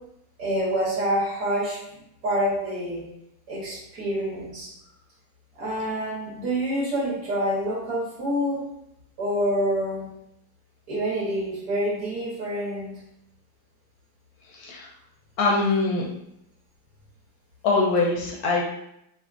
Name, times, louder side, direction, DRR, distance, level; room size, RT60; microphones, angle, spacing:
voice 1, 0.4-1.8 2.2-3.0 3.5-4.7 5.5-8.6 9.2-10.1 10.9-12.9, equal, 55° right, -6 dB, 1.3 m, -27 dB
voice 2, 14.5-14.9 15.4-16.0 17.6-18.6, left 3 dB, 70° left, -2 dB, 0.9 m, -23 dB
5.1 x 2.1 x 2.4 m, 0.80 s
omnidirectional pair, 2.0 m